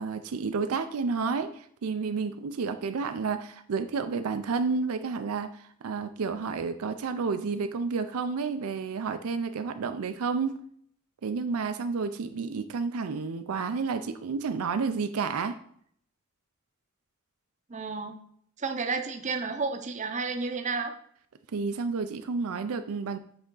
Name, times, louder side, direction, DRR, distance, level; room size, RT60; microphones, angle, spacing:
voice 1, 0.0-10.6 11.2-15.6 21.5-23.2, right 5 dB, 75° right, 9 dB, 0.4 m, -30 dB
voice 2, 17.7-18.2 18.6-20.9, right 4 dB, 35° right, 6 dB, 0.6 m, -31 dB
7.8 x 3.5 x 3.8 m, 0.62 s
head